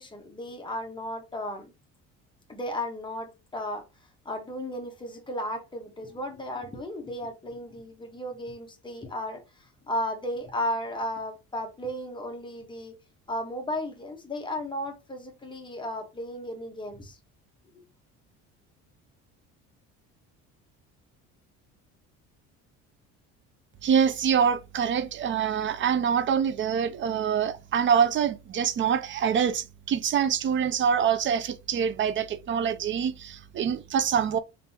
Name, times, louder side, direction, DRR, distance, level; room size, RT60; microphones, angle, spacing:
voice 1, 0.0-1.7 2.5-3.8 4.2-12.9 13.3-17.2, left 1 dB, 15° left, 1.2 m, -34 dB
voice 2, 23.8-34.4, right 7 dB, 40° right, 0.6 m, -25 dB
3.8 x 3.4 x 2.9 m
cardioid pair, 110°, 31 cm